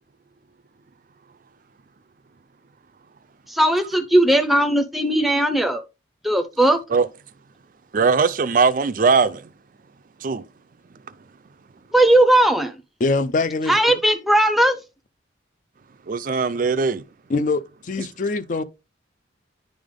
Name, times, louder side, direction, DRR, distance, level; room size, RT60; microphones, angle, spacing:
voice 1, 3.5-5.8 6.2-6.8 11.9-12.7 13.7-14.8, right 1 dB, ahead, 0.6 m, -17 dB
voice 2, 7.9-9.5 10.2-10.4 16.1-17.0, right 5 dB, 45° right, 0.4 m, -20 dB
voice 3, 13.0-14.0 17.3-18.6, left 3 dB, 40° left, 0.4 m, -24 dB
10.0 x 3.4 x 3.6 m
head